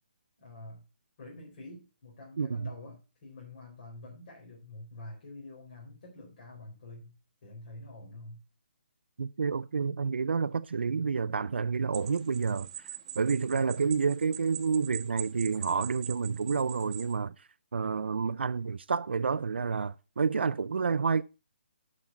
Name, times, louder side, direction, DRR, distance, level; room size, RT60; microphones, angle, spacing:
voice 1, 0.4-0.8 1.2-7.1 7.4-8.4, left 2 dB, 40° left, 4.3 m, -47 dB
voice 2, 2.4-2.7 9.2-12.7 13.2-17.3 17.7-21.2, right 5 dB, 90° right, 0.5 m, -29 dB
sound 1, 11.9-17.2, right 10 dB, 35° right, 1.2 m, -43 dB
9.8 x 5.4 x 5.7 m
hypercardioid pair, 165°, 6 cm